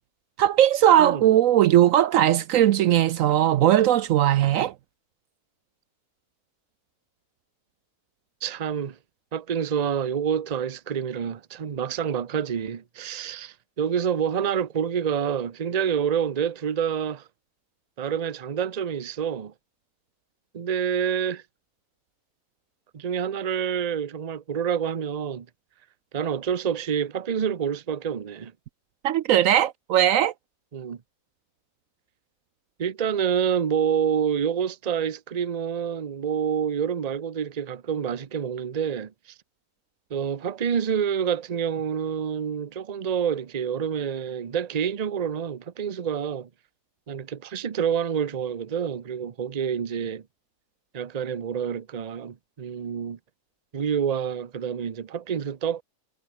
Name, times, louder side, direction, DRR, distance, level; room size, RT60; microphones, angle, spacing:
voice 1, 0.4-4.7 29.0-30.3, right 11 dB, 70° right, 0.9 m, -19 dB
voice 2, 1.0-1.3 8.4-9.0 9.3-17.2 18.0-19.5 20.5-21.4 22.9-25.5 26.1-28.5 30.7-31.0 32.8-39.1 40.1-46.5 47.1-50.2 50.9-53.2 53.7-55.8, right 8 dB, 35° right, 0.7 m, -27 dB
omnidirectional pair, 1.5 m